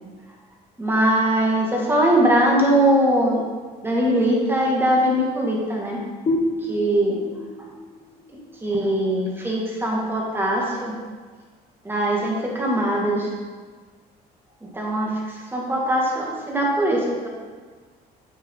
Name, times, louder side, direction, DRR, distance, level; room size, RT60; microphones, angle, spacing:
voice 1, 0.8-3.4 3.8-6.0 6.6-7.2 8.6-11.0 11.8-13.3 14.7-17.3, right 1 dB, 15° right, -2 dB, 2.1 m, -21 dB
sound 1, 6.3-9.7, left 1 dB, 35° left, 1.2 m, -29 dB
8.7 x 6.5 x 3.9 m, 1.5 s
cardioid pair, 110°, 17 cm